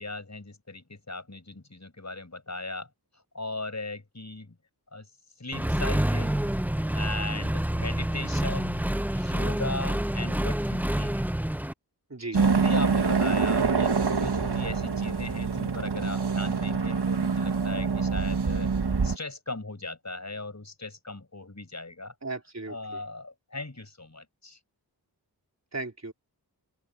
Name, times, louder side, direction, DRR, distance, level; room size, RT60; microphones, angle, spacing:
voice 1, 0.0-2.9 3.3-4.6 4.9-5.1 5.4-6.4 6.9-8.9 9.1-11.2 12.3-18.7 19.0-22.1 22.7-24.6, left 2 dB, 45° left, 7.0 m, -38 dB
Accelerating revving vroom, 5.5-11.7, right 1 dB, 5° right, 0.7 m, -28 dB
voice 2, 12.1-12.4 22.2-23.0 25.7-26.1, right 3 dB, 40° right, 4.1 m, -36 dB
sound 1, 12.3-19.2, right 5 dB, 80° right, 1.9 m, -25 dB
wide cardioid pair, 60°, 40 cm